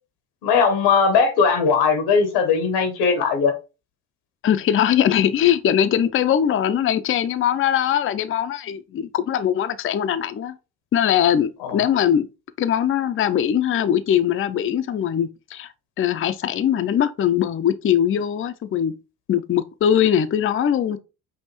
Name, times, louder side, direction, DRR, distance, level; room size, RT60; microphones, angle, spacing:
voice 1, 0.4-3.5 11.6-11.8, left 5 dB, 90° left, 1.1 m, -19 dB
voice 2, 4.4-10.5 10.9-12.3 12.6-15.7 16.0-18.9 19.3-21.0, left 9 dB, 30° left, 0.4 m, -21 dB
5.4 x 2.6 x 3.0 m
supercardioid pair, 55°, 42 cm